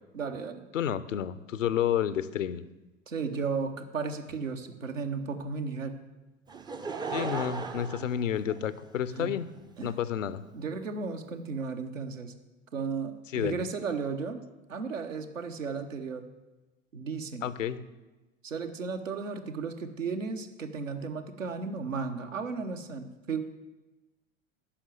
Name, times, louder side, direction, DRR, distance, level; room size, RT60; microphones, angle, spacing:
voice 1, 0.1-0.6 3.1-6.0 9.2-9.4 9.8-9.9 10.5-12.3 12.7-14.4 14.7-16.2 16.9-17.5 18.4-23.4, right 5 dB, 80° right, 6 dB, 1.0 m, -34 dB
voice 2, 0.7-2.6 7.1-9.5 9.8-10.4 13.3-13.6 17.4-17.8, left 9 dB, 75° left, 15 dB, 0.6 m, -30 dB
Laughter / Crowd, 6.5-9.1 9.8-9.9, right 4 dB, 10° right, 0.4 m, -36 dB
10.0 x 5.9 x 7.8 m, 1.1 s
figure-of-eight pair, 75°, 38 cm